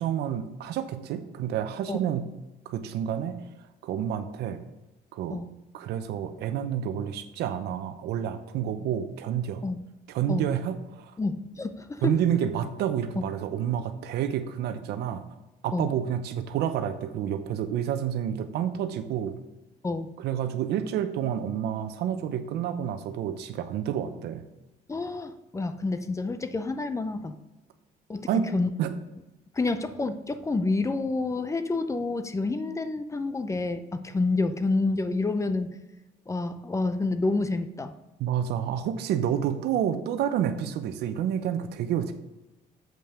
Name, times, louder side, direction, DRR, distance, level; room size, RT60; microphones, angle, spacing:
voice 1, 0.0-2.3 2.6-3.4 3.8-4.6 5.1-5.4 5.7-9.6 10.1-11.1 12.0-15.2 15.6-19.4 20.2-24.4 28.3-28.5 28.8-28.9 38.2-42.1, right 9 dB, 75° right, 9 dB, 0.8 m, -29 dB
voice 2, 11.2-12.1 15.7-15.9 19.8-20.1 24.9-27.3 28.1-28.7 29.5-35.8 36.3-37.9, left 3 dB, 20° left, 11 dB, 0.6 m, -28 dB
7.7 x 5.5 x 5.1 m, 1.0 s
cardioid pair, 110°, 17 cm